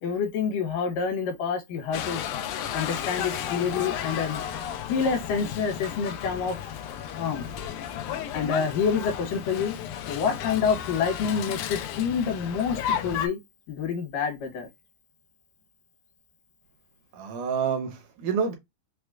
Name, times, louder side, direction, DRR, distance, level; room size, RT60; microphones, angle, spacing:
voice 1, 0.0-2.2 2.7-4.4 4.9-6.6 7.1-7.5 8.3-9.7 10.1-13.4 13.7-14.7, left 6 dB, 70° left, 2.7 m, -27 dB
sound 1, 1.9-13.3, left 9 dB, 90° left, 1.7 m, -33 dB
voice 2, 17.1-18.6, right 6 dB, 75° right, 2.0 m, -28 dB
6.0 x 2.1 x 2.4 m
omnidirectional pair, 4.2 m